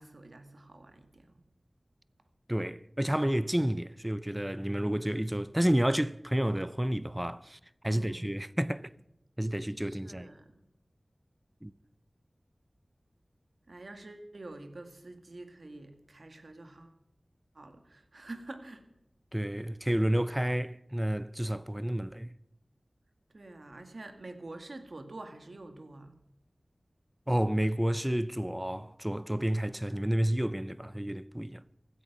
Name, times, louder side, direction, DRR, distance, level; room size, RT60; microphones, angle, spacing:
voice 1, 0.0-1.4 7.8-8.2 9.8-10.6 13.7-16.9 17.6-18.9 23.3-26.2, right 2 dB, 70° right, 2.0 m, -47 dB
voice 2, 2.5-8.9 9.4-10.3 11.6-11.7 19.3-22.3 27.3-31.6, right 1 dB, 10° right, 0.5 m, -30 dB
16.0 x 14.0 x 6.0 m
wide cardioid pair, 55°, 0 cm